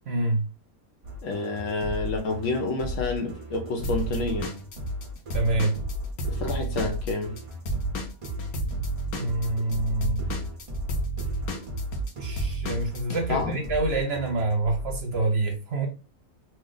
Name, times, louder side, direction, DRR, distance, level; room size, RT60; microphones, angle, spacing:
voice 1, 0.1-0.4 5.3-5.8 8.6-8.7 9.1-10.2 12.2-15.9, right 2 dB, 55° right, 0.9 m, -27 dB
sound 1, 1.0-15.2, left 1 dB, 35° right, 0.6 m, -35 dB
voice 2, 1.2-4.5 6.3-7.4 13.3-13.5, left 3 dB, 70° left, 0.9 m, -29 dB
Drum kit / Drum, 3.8-7.4 7.7-13.2, right 2 dB, 85° left, 1.2 m, -31 dB
3.0 x 2.0 x 3.7 m
omnidirectional pair, 1.5 m